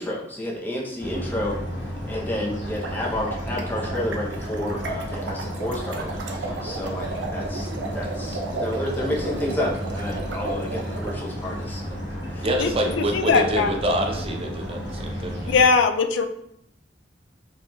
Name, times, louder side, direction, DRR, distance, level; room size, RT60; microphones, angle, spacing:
voice 1, 0.0-1.6 2.1-12.0 12.3-12.5 12.7-13.0 13.3-13.7, left 1 dB, 10° left, -3 dB, 0.6 m, -30 dB
sound 1, 1.0-15.6, equal, 70° left, 1.1 m, -33 dB
sound 2, 2.7-11.2, right 3 dB, 80° right, 0.5 m, -34 dB
voice 2, 12.4-15.6, right 1 dB, 30° right, 2 dB, 0.5 m, -26 dB
voice 3, 13.1-13.7 15.5-16.3, left 5 dB, 85° left, 8 dB, 0.3 m, -19 dB
3.9 x 2.9 x 2.2 m, 0.75 s
head